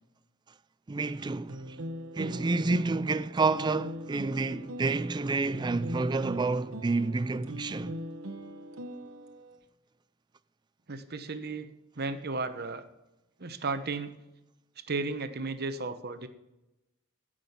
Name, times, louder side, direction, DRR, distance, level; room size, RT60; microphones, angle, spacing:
voice 1, 0.9-1.8 2.1-8.0, right 3 dB, 20° right, 0.4 m, -29 dB
sound 1, 1.5-9.6, equal, 70° right, 1.1 m, -41 dB
voice 2, 10.9-11.7 12.0-12.8 13.4-14.1 14.9-16.3, right 3 dB, 50° right, 0.9 m, -34 dB
16.0 x 6.3 x 5.6 m
head